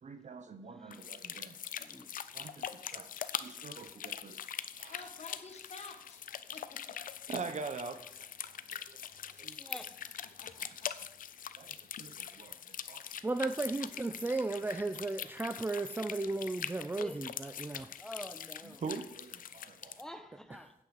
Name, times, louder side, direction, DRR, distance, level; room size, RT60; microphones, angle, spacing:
voice 1, 0.0-1.6 2.3-3.1 3.4-4.5 4.8-5.1 7.3-9.0 9.2-9.8 11.6-13.0 16.9-17.0 18.6-20.0, right 4 dB, 55° right, 9 dB, 1.1 m, -44 dB
voice 2, 0.7-1.1 1.8-2.1 9.6-9.9 17.0-17.2 18.0-18.8 20.0-20.7, left 1 dB, 5° left, 7 dB, 1.1 m, -47 dB
sound 1, 0.9-20.0, left 9 dB, 70° left, 0.6 m, -43 dB
voice 3, 4.9-6.2 6.5-7.0 9.8-11.1, left 3 dB, 45° left, 5 dB, 1.7 m, -51 dB
voice 4, 13.2-17.9, right 2 dB, 15° right, 9 dB, 0.4 m, -35 dB
9.0 x 8.5 x 5.2 m, 0.74 s
cardioid pair, 100°, 15 cm